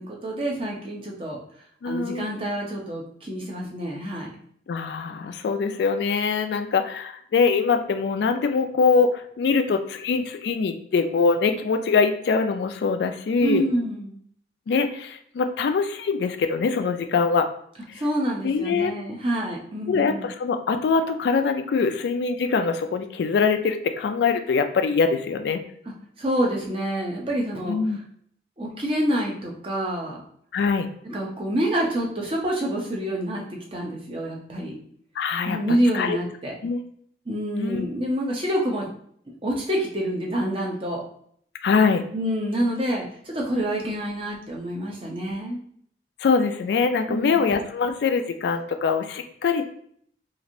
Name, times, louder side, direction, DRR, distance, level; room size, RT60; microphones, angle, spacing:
voice 1, 0.0-1.4 1.8-4.3 13.4-14.2 17.9-20.3 26.2-27.9 28.6-30.2 31.0-34.8 35.5-36.5 37.3-38.9 39.4-41.0 42.1-45.6 47.1-47.4, right 1 dB, 30° right, -1 dB, 0.6 m, -27 dB
voice 2, 1.8-2.3 4.7-13.6 14.7-17.5 18.4-18.9 19.9-25.6 27.7-28.0 30.5-30.9 35.2-35.6 35.9-36.2 36.6-36.8 37.6-37.9 41.6-42.0 46.2-49.6, left 5 dB, 70° left, 8 dB, 0.3 m, -23 dB
3.0 x 2.5 x 2.6 m, 0.63 s
head